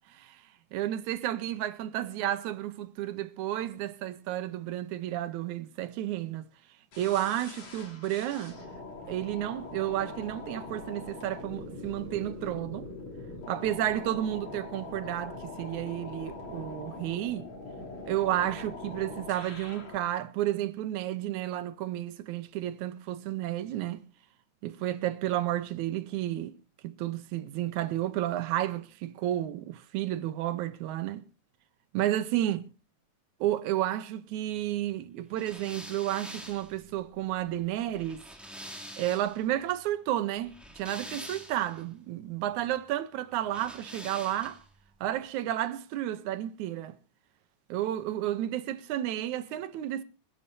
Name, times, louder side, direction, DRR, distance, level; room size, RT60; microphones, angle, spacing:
voice 1, 0.7-6.5 7.0-8.6 9.1-12.9 13.5-17.5 18.1-24.0 24.6-26.6 26.8-31.2 31.9-32.7 33.4-38.2 39.0-44.6 45.0-47.0 47.7-50.0, right 13 dB, 85° right, 2.2 m, -32 dB
sound 1, 6.9-20.1, left 3 dB, 65° left, 4.4 m, -42 dB
sound 2, 35.4-39.5 40.4-41.8 43.5-44.7, equal, ahead, 2.3 m, -45 dB
26.5 x 10.5 x 2.7 m
omnidirectional pair, 3.3 m